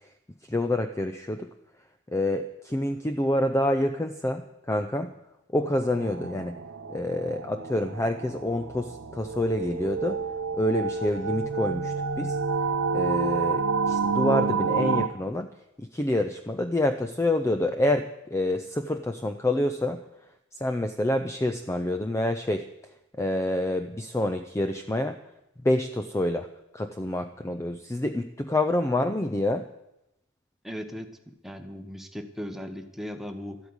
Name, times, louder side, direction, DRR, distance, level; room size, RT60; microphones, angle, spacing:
voice 1, 0.5-1.5 2.1-5.1 5.5-6.6 6.9-10.2 10.5-12.4 12.9-15.5 15.8-20.0 20.5-22.6 23.2-25.2 25.6-26.5 26.7-29.7, left 1 dB, 15° left, 8 dB, 0.5 m, -27 dB
sound 1, 5.6-15.1, right 4 dB, 80° right, 0.9 m, -29 dB
voice 2, 30.6-33.6, equal, ahead, 6 dB, 1.1 m, -38 dB
12.5 x 8.5 x 9.6 m, 0.88 s
head